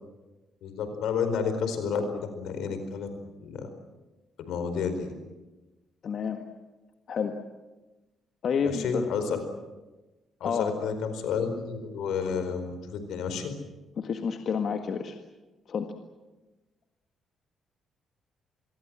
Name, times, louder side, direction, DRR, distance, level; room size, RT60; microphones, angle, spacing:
voice 1, 0.6-3.1 3.4-3.7 4.4-5.1 8.8-9.4 10.4-13.5, left 6 dB, 80° left, 9 dB, 4.6 m, -30 dB
voice 2, 6.0-6.5 7.1-7.4 8.4-9.1 10.4-10.7 14.0-15.2 15.7-16.0, left 6 dB, 60° left, 5 dB, 1.8 m, -29 dB
26.0 x 22.0 x 7.6 m, 1.1 s
cardioid pair, 90°, 0 cm